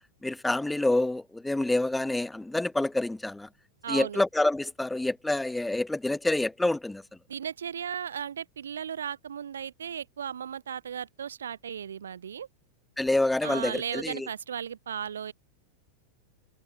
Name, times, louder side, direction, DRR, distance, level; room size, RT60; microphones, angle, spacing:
voice 1, 0.2-3.5 3.9-7.0 13.0-14.3, left 2 dB, 5° left, 0.6 m, -27 dB
voice 2, 3.8-4.2 7.3-12.5 13.4-15.3, right 8 dB, 65° right, 0.8 m, -36 dB
figure-of-eight pair, 90°, 0 cm